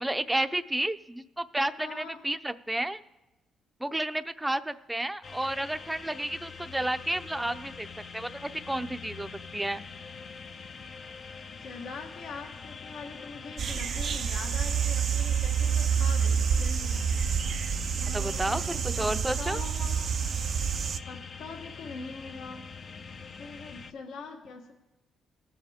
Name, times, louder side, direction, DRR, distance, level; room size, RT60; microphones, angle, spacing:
voice 1, 0.0-3.0 3.8-7.9 8.1-9.8 18.1-19.6, right 1 dB, 10° right, 11 dB, 0.6 m, -31 dB
voice 2, 1.8-2.2 11.5-17.1 18.0-19.1 19.4-20.1 21.1-22.7 23.3-24.7, left 4 dB, 75° left, 3 dB, 1.4 m, -43 dB
sound 1, 5.2-23.9, left 5 dB, 45° left, 0.6 m, -44 dB
sound 2, 13.6-21.0, right 7 dB, 55° right, 0.5 m, -28 dB
19.5 x 7.1 x 3.6 m, 0.99 s
cardioid pair, 90°, 0 cm